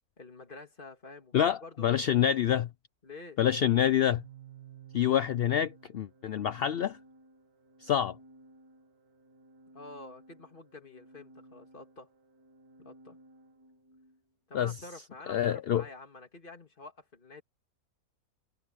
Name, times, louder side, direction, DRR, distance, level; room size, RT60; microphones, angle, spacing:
voice 1, 0.2-1.9 3.0-3.4 9.7-12.1 12.8-13.2 14.5-17.4, left 2 dB, 35° left, 2.7 m, -48 dB
voice 2, 1.3-2.7 3.4-4.2 4.9-7.0 7.8-8.2 14.5-14.7 15.3-15.8, left 10 dB, 65° left, 0.5 m, -27 dB
Organ, 3.4-14.2, right 5 dB, 75° right, 2.5 m, -55 dB
omnidirectional pair, 1.6 m